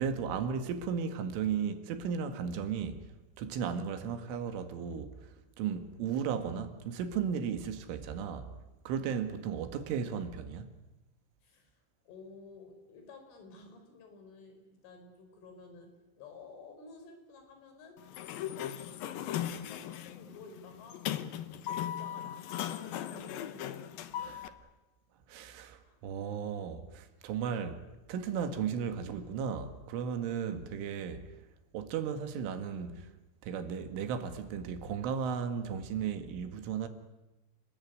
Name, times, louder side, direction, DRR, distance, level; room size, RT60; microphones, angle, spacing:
voice 1, 0.0-3.1 3.4-8.6 8.9-10.7 24.2-24.5 25.3-31.3 31.7-33.1 33.4-36.9, right 7 dB, 90° right, 4.4 m, -35 dB
voice 2, 11.4-18.0 18.8-21.1 21.8-23.8 25.4-26.3, left 3 dB, 90° left, 7.1 m, -53 dB
Sliding door, 18.0-24.5, left 11 dB, 70° left, 2.3 m, -38 dB
30.0 x 20.5 x 9.5 m
omnidirectional pair, 5.4 m